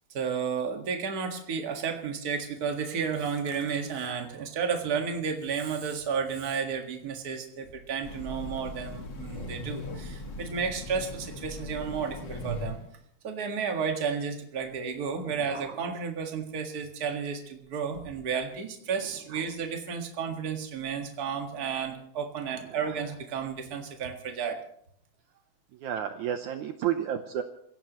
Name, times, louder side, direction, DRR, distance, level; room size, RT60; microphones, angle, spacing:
voice 1, 0.1-12.8 13.2-24.6, right 6 dB, 45° right, 3 dB, 1.3 m, -32 dB
Train, 8.0-13.0, left 1 dB, 40° left, 1.8 m, -38 dB
voice 2, 25.7-27.4, right 10 dB, 80° right, 7 dB, 1.7 m, -31 dB
28.0 x 16.5 x 3.1 m, 0.67 s
omnidirectional pair, 4.5 m